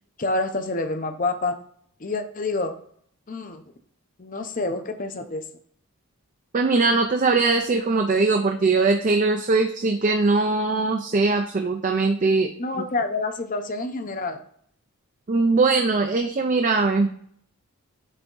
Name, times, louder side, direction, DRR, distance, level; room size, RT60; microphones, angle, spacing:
voice 1, 0.2-1.6 2.0-2.8 3.3-3.6 4.2-5.4 12.6-14.4, left 2 dB, 35° left, 8 dB, 0.6 m, -27 dB
voice 2, 6.5-12.5 15.3-17.1, right 3 dB, 35° right, 4 dB, 0.4 m, -21 dB
8.1 x 3.5 x 3.8 m, 0.64 s
head